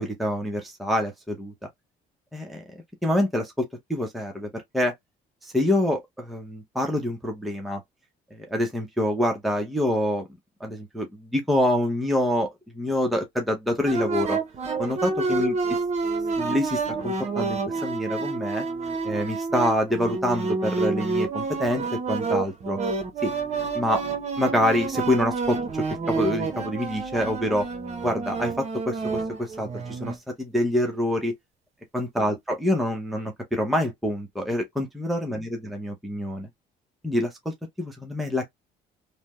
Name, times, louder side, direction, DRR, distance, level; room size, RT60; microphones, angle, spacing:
voice 1, 0.0-1.5 2.3-2.6 3.0-4.9 5.4-7.8 8.3-10.2 10.6-12.5 12.7-14.4 14.8-15.8 16.4-18.7 19.0-22.8 23.2-23.3 23.7-24.0 24.4-27.7 28.0-31.3 31.9-36.5 37.0-38.5, left 1 dB, ahead, 0.8 m, -26 dB
sound 1, 13.9-30.2, right 4 dB, 40° right, 0.9 m, -29 dB
3.3 x 2.1 x 2.9 m
cardioid pair, 110°, 17 cm